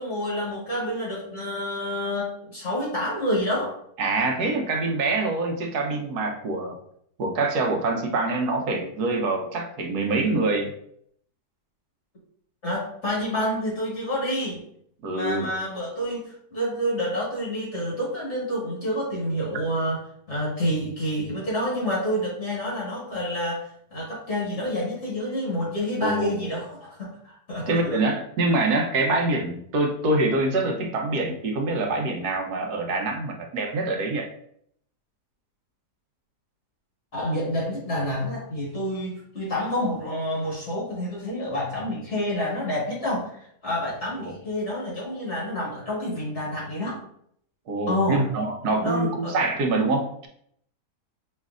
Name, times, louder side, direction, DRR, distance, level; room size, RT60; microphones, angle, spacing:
voice 1, 0.0-3.8 12.6-14.6 15.1-20.0 20.3-28.0 37.1-47.0 47.9-48.3 48.8-49.4, equal, 45° left, -6 dB, 1.7 m, -28 dB
voice 2, 4.0-6.8 7.2-10.7 15.0-15.5 26.0-26.5 27.7-34.3 44.2-44.3 47.7-50.3, right 2 dB, 75° right, 3 dB, 1.2 m, -25 dB
5.1 x 3.1 x 2.4 m, 0.68 s
omnidirectional pair, 1.8 m